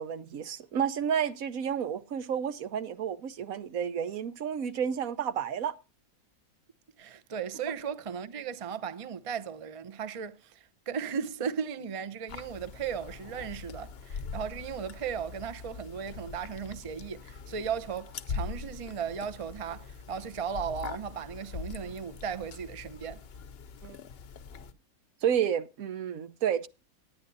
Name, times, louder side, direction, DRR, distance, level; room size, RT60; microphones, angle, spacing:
voice 1, 0.0-5.7 23.8-24.0 25.2-26.7, right 8 dB, 75° right, 1.3 m, -31 dB
voice 2, 7.0-23.2, right 7 dB, 30° right, 0.7 m, -36 dB
sound 1, 12.3-24.7, left 5 dB, 50° left, 0.8 m, -42 dB
18.0 x 10.0 x 2.7 m
omnidirectional pair, 1.5 m